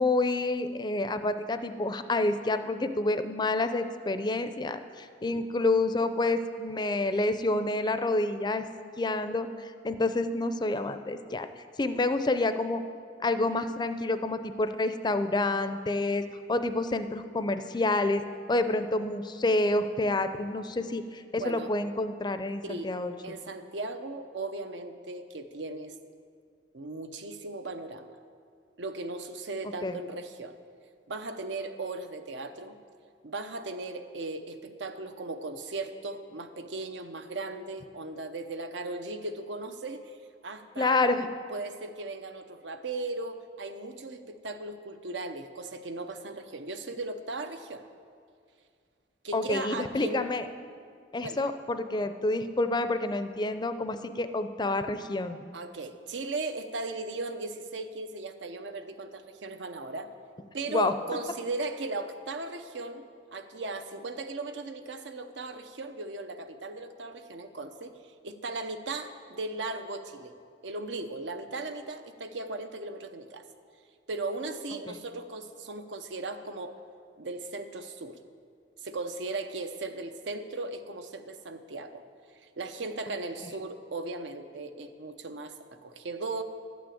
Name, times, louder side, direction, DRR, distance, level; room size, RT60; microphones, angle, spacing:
voice 1, 0.0-8.6 9.0-11.5 11.8-12.8 13.2-16.2 16.5-18.2 18.5-23.1 29.8-30.0 40.8-41.3 49.3-50.5 51.1-55.4 60.7-60.9 74.9-75.0, left 2 dB, 25° left, 10 dB, 0.5 m, -28 dB
voice 2, 21.3-21.7 22.6-22.9 23.2-25.9 26.7-28.2 28.8-30.6 31.1-32.8 33.2-40.2 40.4-41.1 41.5-47.8 49.2-50.3 51.2-51.5 55.5-60.1 60.5-70.4 70.6-73.4 74.1-76.8 77.2-78.2 78.8-82.0 82.4-86.4, right 2 dB, 80° right, 8 dB, 0.8 m, -37 dB
12.0 x 6.2 x 8.5 m, 2.2 s
head